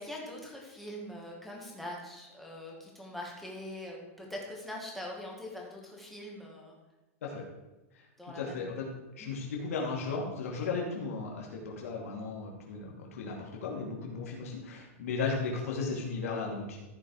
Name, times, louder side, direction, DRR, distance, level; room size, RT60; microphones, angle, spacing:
voice 1, 0.0-6.7 8.2-8.9 9.2-9.4 15.4-15.5, left 1 dB, ahead, -3 dB, 2.1 m, -43 dB
voice 2, 8.4-8.9 9.2-16.8, left 4 dB, 90° left, -1 dB, 2.5 m, -35 dB
14.5 x 5.3 x 4.9 m, 1.1 s
supercardioid pair, 160°, 8 cm